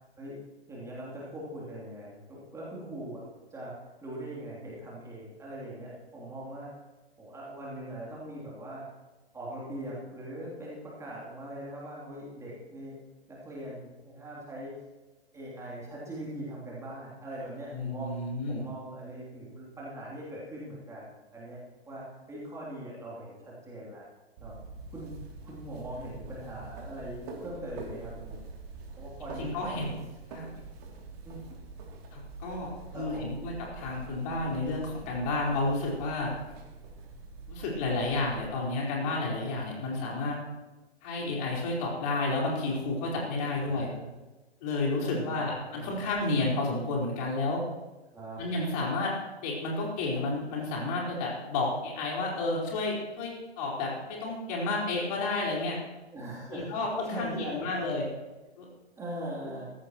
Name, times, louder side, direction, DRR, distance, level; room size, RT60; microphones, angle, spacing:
voice 1, 0.7-3.2 3.5-6.7 7.2-8.9 9.3-13.0 13.3-14.7 15.3-18.2 18.5-21.6 21.9-24.0 24.4-24.6 24.9-25.1 25.4-28.4 29.0-29.9 31.2-31.6 32.9-33.4 43.6-44.1 45.0-46.0 48.1-48.4 56.1-57.8 59.0-59.6, right 1 dB, 10° right, -6 dB, 3.1 m, -41 dB
voice 2, 17.7-18.6 29.4-29.9 30.3-30.5 32.1-36.3 37.5-40.4 41.0-43.9 44.6-47.6 48.4-49.1 49.4-55.8 56.5-58.0 58.6-58.7, left 2 dB, 35° left, -3 dB, 4.6 m, -31 dB
sound 1, 24.4-38.5, right 3 dB, 35° right, 2.8 m, -45 dB
17.0 x 15.0 x 3.1 m, 1.1 s
figure-of-eight pair, 125°, 33 cm